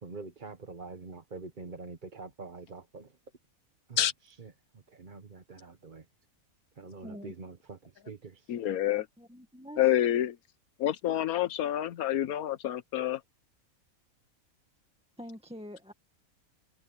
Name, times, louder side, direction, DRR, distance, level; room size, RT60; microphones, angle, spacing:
voice 1, 0.0-3.2 3.9-4.0 4.2-6.0 6.8-8.6, right 4 dB, 35° right, 1.2 m, -45 dB
voice 2, 7.0-7.3 9.2-9.9 15.2-15.9, equal, 5° right, 1.7 m, -45 dB
voice 3, 8.5-9.1 9.8-10.4 10.8-13.2, left 12 dB, 85° left, 1.3 m, -28 dB
omnidirectional pair, 1.5 m